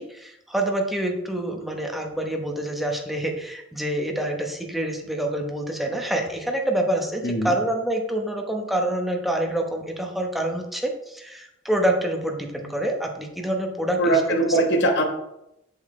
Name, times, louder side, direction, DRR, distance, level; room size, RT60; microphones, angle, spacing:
voice 1, 0.0-14.2 14.5-14.6, right 1 dB, ahead, 1 dB, 1.0 m, -27 dB
voice 2, 14.0-15.0, right 1 dB, 60° left, 2 dB, 1.3 m, -21 dB
7.2 x 7.2 x 3.2 m, 0.85 s
head